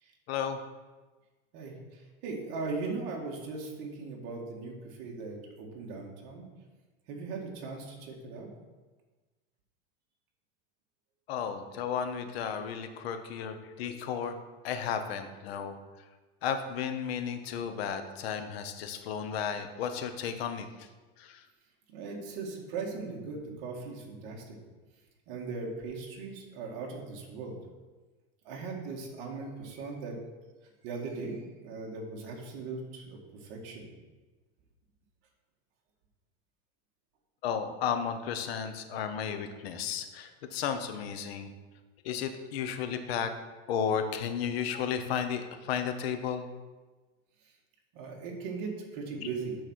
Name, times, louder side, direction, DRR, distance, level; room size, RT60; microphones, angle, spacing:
voice 1, 0.3-0.6 11.3-14.4 14.6-15.8 16.4-20.9 21.2-21.4 37.4-41.5 42.0-43.3 43.7-46.5 49.2-49.3, left 7 dB, 80° left, 8 dB, 1.0 m, -33 dB
voice 2, 2.2-6.5 7.1-8.5 21.9-24.4 25.3-27.6 28.5-30.2 30.8-33.8 47.9-49.6, right 4 dB, 55° right, 0 dB, 1.9 m, -39 dB
8.8 x 4.2 x 6.2 m, 1.3 s
supercardioid pair, 165°, 30 cm